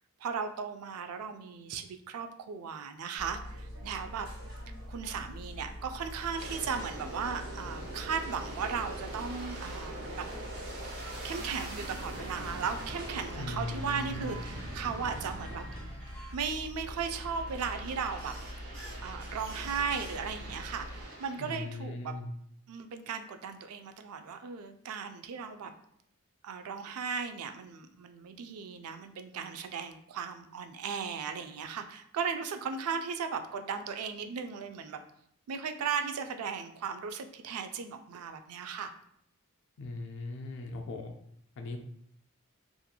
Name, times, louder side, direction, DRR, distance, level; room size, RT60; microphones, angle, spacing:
voice 1, 0.2-4.3 4.9-10.2 11.2-15.6 16.3-18.3 19.0-22.2 22.7-25.7 26.4-35.0 35.5-38.9, right 6 dB, 90° right, 7 dB, 0.3 m, -36 dB
sound 1, 3.2-21.0, equal, 75° right, 1.2 m, -44 dB
Aircraft, 6.3-16.3 16.8-21.8, right 1 dB, 50° right, 0.7 m, -44 dB
sound 2, 10.9-16.3, right 2 dB, 5° left, 0.7 m, -51 dB
voice 2, 13.3-14.3 21.4-22.3 39.8-41.1 41.6-41.8, left 2 dB, 60° left, 4 dB, 0.3 m, -39 dB
2.8 x 2.5 x 2.2 m, 0.70 s
head